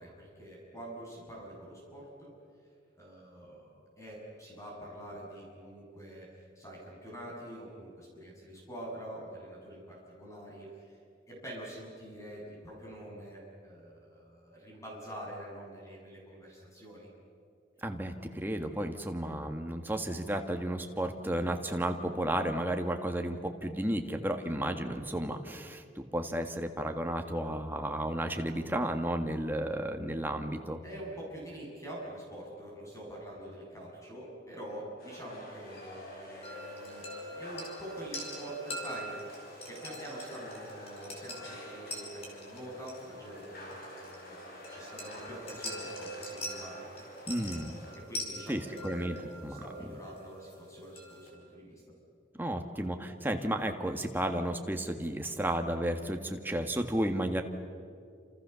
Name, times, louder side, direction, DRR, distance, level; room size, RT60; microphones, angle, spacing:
voice 1, 0.0-2.3 2.9-6.3 6.6-11.0 11.3-17.1 30.8-37.0 37.3-46.9 47.9-51.8, right 1 dB, 15° left, -3 dB, 7.7 m, -45 dB
voice 2, 17.8-30.8 47.3-47.7 48.5-49.2 49.4-49.6 52.4-57.4, right 1 dB, 10° right, 4 dB, 1.6 m, -33 dB
sound 1, 35.0-47.9, equal, 55° left, 6.0 m, -48 dB
sound 2, 36.4-51.3, left 1 dB, 35° left, 5.2 m, -44 dB
29.0 x 28.0 x 7.0 m, 2.4 s
head